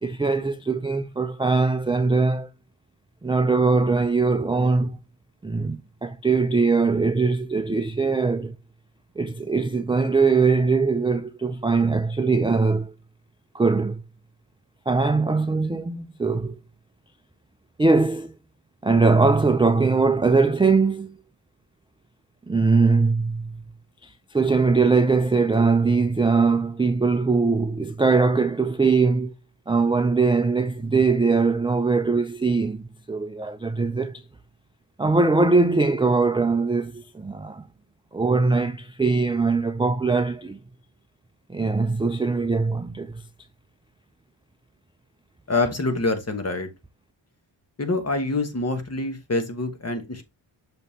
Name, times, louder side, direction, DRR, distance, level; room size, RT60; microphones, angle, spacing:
voice 1, 0.0-2.5 3.2-5.0 5.4-8.6 9.2-12.9 13.5-14.0 14.9-16.6 17.8-18.3 18.8-21.2 22.5-23.6 24.0-29.3 29.7-34.2 35.0-37.6 38.1-40.6 41.5-43.2, right 4 dB, 10° right, 0.3 m, -21 dB
voice 2, 45.5-46.7 47.8-50.2, left 2 dB, 30° left, 1.3 m, -26 dB
6.3 x 5.3 x 2.8 m
wide cardioid pair, 125°, 47 cm